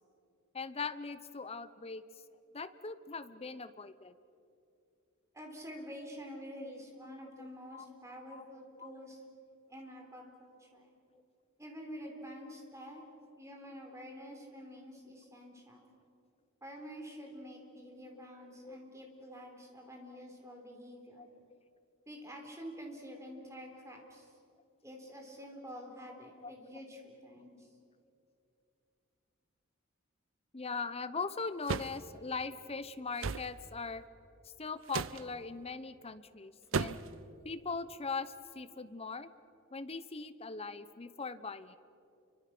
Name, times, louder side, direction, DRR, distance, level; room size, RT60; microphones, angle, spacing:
voice 1, 0.5-2.0 2.5-4.2 6.6-6.7 7.4-7.5 7.7-7.9 8.3-8.4 8.8-9.0 18.1-18.2 18.5-18.8 21.2-21.6 26.4-26.5 30.5-34.0 34.4-37.0 37.4-39.3 39.7-41.8, left 4 dB, 30° left, 12 dB, 0.8 m, -40 dB
voice 2, 5.3-9.2 9.7-10.9 11.6-13.0 13.4-15.9 16.6-21.3 22.1-24.3 24.8-27.7, equal, 15° right, 2 dB, 3.9 m, -48 dB
sound 1, 31.7-32.0 33.2-33.5 34.9-35.2 36.7-37.1, right 5 dB, 65° right, 0.6 m, -34 dB
29.5 x 24.5 x 6.1 m, 2.6 s
head